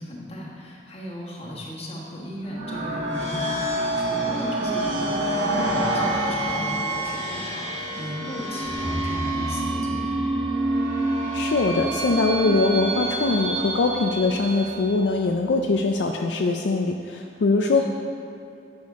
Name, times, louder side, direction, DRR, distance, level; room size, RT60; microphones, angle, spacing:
voice 1, 0.0-10.2 17.7-17.9, equal, 35° left, -4 dB, 1.4 m, -36 dB
sound 1, 2.4-15.0, right 1 dB, 85° right, 1.6 m, -27 dB
sound 2, 3.5-6.1 7.1-7.2 8.6-15.8, left 1 dB, 5° left, 0.6 m, -40 dB
voice 2, 11.3-17.9, left 3 dB, 70° left, 3 dB, 0.4 m, -22 dB
10.5 x 6.2 x 3.6 m, 2.6 s
head